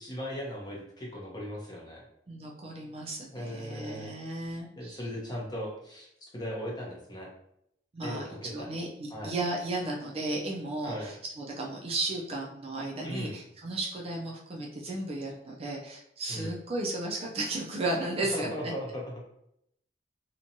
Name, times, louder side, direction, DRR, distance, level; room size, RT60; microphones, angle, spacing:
voice 1, 0.0-2.0 3.3-4.1 4.8-7.3 8.0-8.7 9.1-9.3 10.8-11.1 13.0-13.4 16.3-16.5 18.2-19.2, equal, 25° left, -3 dB, 0.7 m, -38 dB
voice 2, 2.3-5.0 7.9-8.3 8.5-18.7, right 2 dB, 35° right, -1 dB, 0.4 m, -34 dB
2.8 x 2.2 x 2.6 m, 0.75 s
head